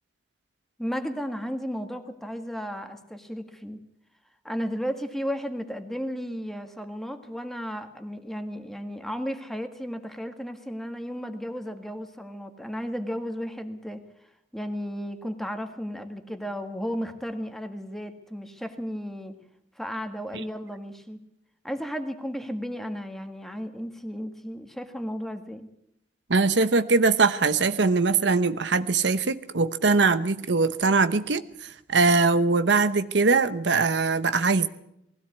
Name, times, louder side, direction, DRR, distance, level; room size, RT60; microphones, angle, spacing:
voice 1, 0.8-3.8 4.4-14.0 14.5-19.4 19.8-21.2 21.6-25.7, equal, ahead, 7 dB, 1.8 m, -34 dB
voice 2, 26.3-34.7, right 4 dB, 75° right, 11 dB, 1.0 m, -22 dB
20.5 x 16.5 x 8.3 m, 0.78 s
head